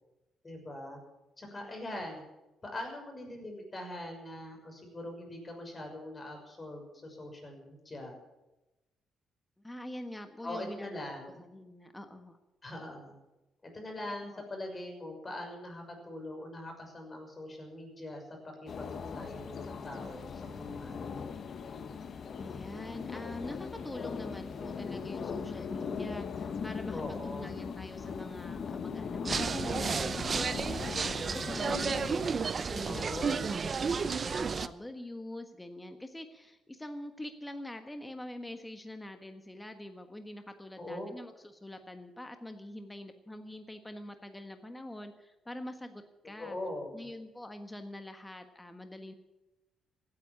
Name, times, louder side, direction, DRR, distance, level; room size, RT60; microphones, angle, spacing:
voice 1, 0.4-1.0 1.4-2.2 2.6-8.1 10.4-11.4 12.6-13.1 13.7-21.2 26.9-27.6 32.9-33.5 40.8-41.1 46.4-47.1, left 1 dB, 25° left, 2 dB, 6.2 m, -42 dB
voice 2, 9.6-10.9 11.5-12.4 14.0-14.4 22.4-46.6 46.9-49.1, left 1 dB, 10° left, 6 dB, 1.5 m, -45 dB
sound 1, 18.7-32.3, left 6 dB, 50° left, 1.0 m, -39 dB
sound 2, 29.3-34.7, right 5 dB, 40° right, 0.7 m, -32 dB
16.0 x 9.8 x 8.7 m, 0.99 s
cardioid pair, 90°, 0 cm